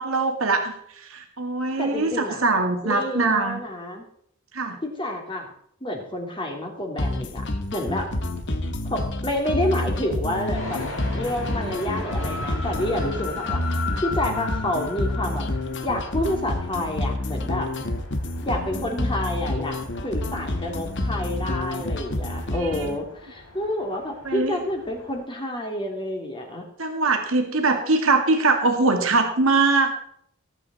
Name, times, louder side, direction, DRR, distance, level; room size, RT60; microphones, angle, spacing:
voice 1, 0.0-3.6 4.5-4.8 13.4-13.5 22.5-22.9 24.2-24.5 26.8-30.0, right 3 dB, 75° right, 5 dB, 2.0 m, -22 dB
voice 2, 1.8-2.4 2.8-4.0 4.8-5.5 5.8-7.4 7.7-8.1 8.9-13.6 14.0-15.4 15.8-17.7 18.4-19.8 20.0-26.7, left 1 dB, 25° left, 2 dB, 2.5 m, -29 dB
sound 1, 7.0-23.0, left 1 dB, 55° left, 1.4 m, -28 dB
sound 2, 10.5-25.2, left 3 dB, 75° left, 4.7 m, -38 dB
18.5 x 8.5 x 4.1 m, 0.66 s
head